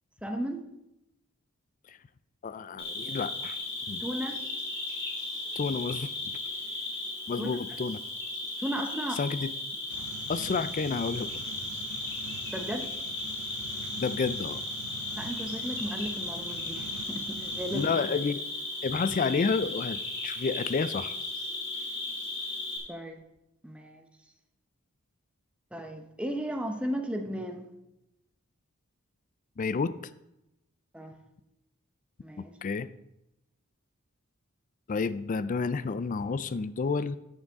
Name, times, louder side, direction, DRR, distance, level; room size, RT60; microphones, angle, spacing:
voice 1, 0.2-0.6 4.0-4.4 7.4-7.5 8.6-9.2 12.5-12.9 15.1-17.9 22.9-23.2 23.6-24.0 25.7-27.7 30.9-31.2 32.2-32.5, equal, 5° right, 4 dB, 0.8 m, -35 dB
voice 2, 2.4-3.6 3.9-4.1 5.6-6.1 7.3-8.0 9.2-9.5 10.3-11.4 14.0-14.6 17.7-18.4 18.8-21.2 29.6-30.0 32.4-32.9 34.9-37.2, left 4 dB, 35° left, 15 dB, 0.4 m, -30 dB
Cricket, 2.8-22.8, left 2 dB, 55° left, 3.3 m, -36 dB
sound 1, 9.9-17.9, right 5 dB, 80° right, 0.5 m, -45 dB
13.5 x 6.5 x 3.6 m, 0.90 s
head